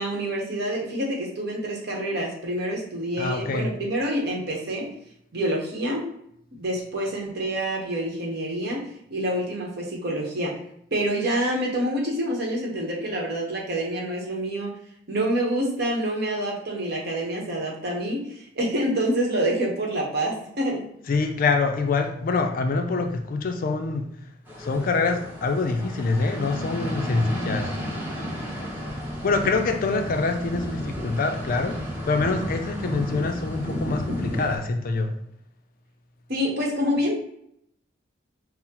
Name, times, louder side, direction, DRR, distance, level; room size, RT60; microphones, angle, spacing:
voice 1, 0.0-4.9 5.3-6.0 6.6-8.8 9.1-10.5 10.9-14.7 15.1-20.9 36.3-37.2, right 1 dB, 60° right, -1 dB, 1.0 m, -27 dB
voice 2, 3.2-3.7 21.1-24.1 24.6-27.7 29.2-31.8 32.0-35.1, left 3 dB, 50° left, 5 dB, 0.4 m, -25 dB
sound 1, 24.5-34.6, equal, 10° right, 0.9 m, -33 dB
5.5 x 2.0 x 2.9 m, 0.73 s
head